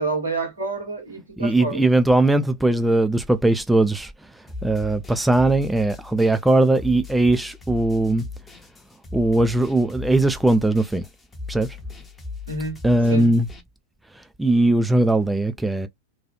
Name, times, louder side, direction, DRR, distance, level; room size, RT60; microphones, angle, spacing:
voice 1, 0.0-1.8 12.5-12.8 13.1-13.3, right 3 dB, 80° right, 1.1 m, -28 dB
voice 2, 1.4-4.1 4.6-8.3 9.1-11.1 11.5-11.7 12.8-13.5 14.2-15.9, right 2 dB, 5° right, 0.3 m, -19 dB
sound 1, 4.5-13.6, left 4 dB, 15° left, 0.7 m, -38 dB
2.6 x 2.3 x 2.2 m
figure-of-eight pair, 90°, 0 cm